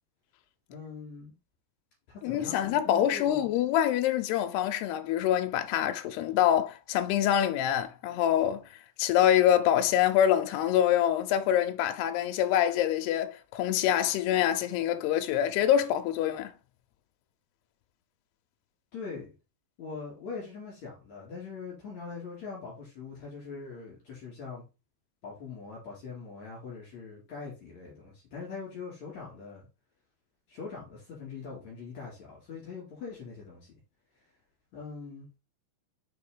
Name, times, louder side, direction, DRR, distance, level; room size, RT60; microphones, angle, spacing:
voice 1, 0.7-1.3 2.1-3.5 18.9-19.3 19.8-24.6 25.2-29.7 30.5-33.7 34.7-35.3, left 4 dB, 45° left, 3.1 m, -42 dB
voice 2, 2.2-8.7 9.0-16.5, left 10 dB, 80° left, 2.5 m, -25 dB
6.7 x 4.8 x 3.8 m
omnidirectional pair, 5.3 m